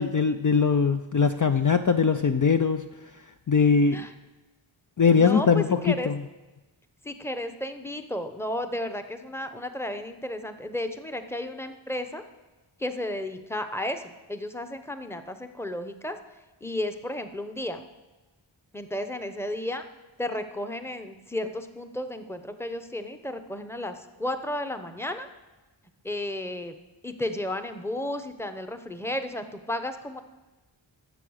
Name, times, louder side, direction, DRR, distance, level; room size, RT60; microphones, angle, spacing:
voice 1, 0.0-2.9 3.5-4.1 5.0-5.6 6.1-6.2, left 5 dB, 45° left, 7 dB, 0.5 m, -21 dB
voice 2, 5.2-6.1 7.0-12.2 12.8-16.2 16.6-17.8 18.7-19.8 20.2-25.3 26.0-26.7 27.0-30.2, left 1 dB, 5° left, 8 dB, 0.8 m, -33 dB
12.0 x 7.6 x 6.4 m, 1.1 s
wide cardioid pair, 60°, 47 cm